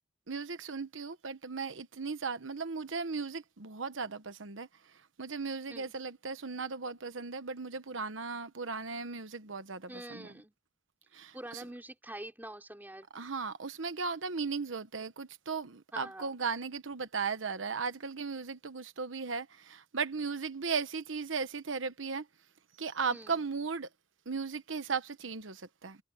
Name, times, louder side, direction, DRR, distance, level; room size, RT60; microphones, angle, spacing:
voice 1, 0.3-10.3 11.1-11.6 13.1-22.3 22.8-23.9 24.3-26.0, right 5 dB, 85° right, 1.1 m, -37 dB
voice 2, 9.9-10.5 11.3-13.1 15.9-16.4 23.1-23.4, right 1 dB, 10° right, 3.7 m, -45 dB
head